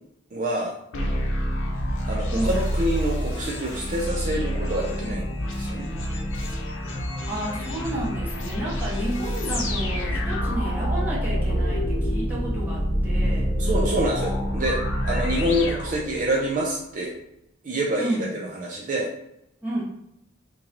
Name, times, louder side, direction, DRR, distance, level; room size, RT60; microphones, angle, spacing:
voice 1, 0.3-0.7 2.1-5.9 13.6-17.1 17.6-19.1, right 1 dB, 45° right, -2 dB, 0.5 m, -27 dB
sound 1, 0.9-16.5, equal, 85° left, 0.7 m, -27 dB
voice 2, 7.3-13.5 18.0-18.3 19.6-19.8, right 1 dB, 10° right, -7 dB, 1.2 m, -31 dB
sound 2, 8.3-15.4, equal, 30° left, 1.0 m, -32 dB
3.0 x 2.9 x 3.8 m, 0.80 s
head